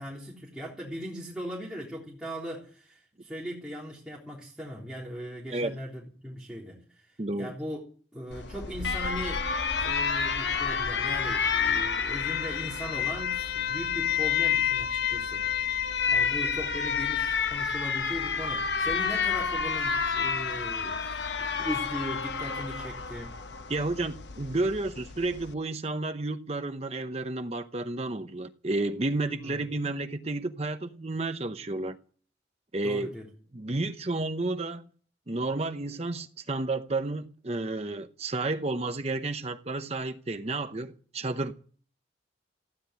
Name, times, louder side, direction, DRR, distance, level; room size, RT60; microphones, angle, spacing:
voice 1, 0.0-7.8 8.1-9.5 9.8-15.7 16.1-21.1 21.4-23.4 29.4-29.7 32.8-33.2, equal, 5° right, 3.6 m, -39 dB
voice 2, 7.2-7.5 23.7-32.0 32.7-33.1 33.5-34.8 35.3-41.5, right 2 dB, 35° right, 0.8 m, -31 dB
Alarm, 8.3-25.5, left 6 dB, 70° left, 1.0 m, -29 dB
15.0 x 10.0 x 9.2 m
head